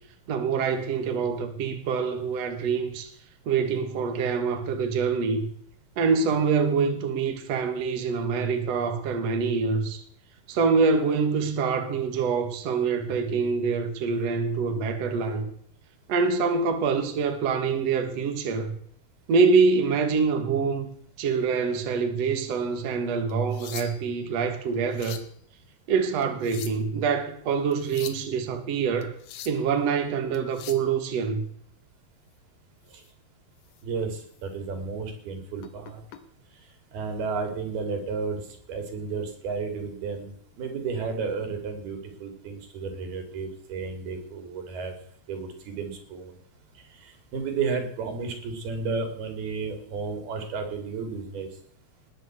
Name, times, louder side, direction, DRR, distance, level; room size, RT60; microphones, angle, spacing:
voice 1, 0.3-3.1 3.5-5.5 6.0-10.0 10.5-15.5 16.1-18.7 19.3-20.9 21.2-25.2 25.9-29.1 29.5-31.4, right 5 dB, 50° right, 2.5 m, -25 dB
sound 1, 23.3-24.2 24.7-25.3 26.2-26.9 27.7-28.3 29.0-29.7 30.3-30.9 32.9-33.1 33.6-33.8 34.3-34.4 35.6-36.2 37.3-37.5, left 9 dB, 65° left, 2.3 m, -42 dB
voice 2, 33.8-36.0 36.9-38.4 38.7-44.9 45.3-46.3 47.0-51.5, right 5 dB, 80° right, 4.7 m, -32 dB
19.5 x 7.8 x 8.2 m
omnidirectional pair, 4.4 m